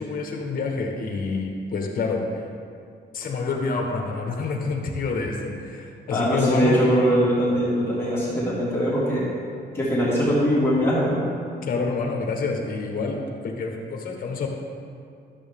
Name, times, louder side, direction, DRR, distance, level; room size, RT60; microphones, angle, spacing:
voice 1, 0.0-2.2 3.1-6.8 11.6-13.2 13.4-14.5, left 4 dB, 50° left, 2 dB, 1.2 m, -27 dB
voice 2, 6.1-9.3 9.7-11.2, equal, 15° left, -10 dB, 2.2 m, -21 dB
12.0 x 7.3 x 3.6 m, 2.3 s
wide cardioid pair, 165°, 19 cm